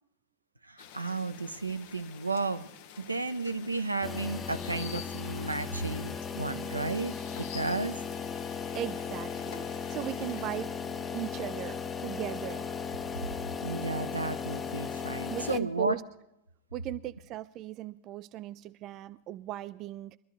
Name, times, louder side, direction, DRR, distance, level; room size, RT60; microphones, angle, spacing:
voice 1, 0.7-2.7 3.0-8.0 13.6-16.0, right 3 dB, 80° right, 0.7 m, -33 dB
sound 1, 0.8-10.6, left 9 dB, 50° left, 0.9 m, -49 dB
sound 2, 4.0-15.6, left 6 dB, 20° left, 0.7 m, -37 dB
voice 2, 8.7-10.7 11.1-12.7 15.3-16.0 16.7-20.2, right 13 dB, 35° right, 0.4 m, -38 dB
23.0 x 12.5 x 3.2 m
figure-of-eight pair, 90°, 0 cm